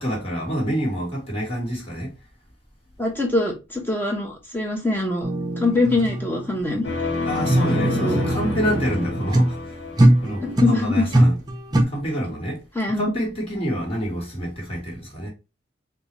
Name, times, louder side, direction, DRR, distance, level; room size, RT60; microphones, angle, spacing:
voice 1, 0.0-2.1 7.2-9.6 10.2-11.3 11.9-12.6 12.9-15.3, equal, 30° left, 1.4 m, -27 dB
voice 2, 3.0-5.3 5.6-6.9 7.7-8.2 10.4-11.1 12.7-13.1, left 2 dB, 10° left, 0.8 m, -23 dB
sound 1, 5.2-9.6 10.0-10.8 11.1-11.8, right 1 dB, 20° right, 0.5 m, -21 dB
sound 2, 6.8-10.8, left 3 dB, 60° left, 0.9 m, -29 dB
3.8 x 2.4 x 2.9 m
head